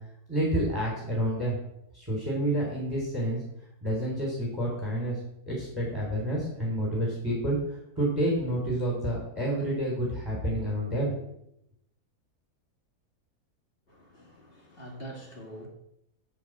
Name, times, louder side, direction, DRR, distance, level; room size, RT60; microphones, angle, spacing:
voice 1, 0.3-1.6 1.9-3.4 3.8-5.2 5.4-11.3, right 1 dB, 15° right, -4 dB, 3.4 m, -29 dB
voice 2, 13.9-15.7, right 1 dB, 35° left, 0 dB, 2.5 m, -44 dB
10.0 x 5.6 x 7.8 m, 0.78 s
omnidirectional pair, 1.7 m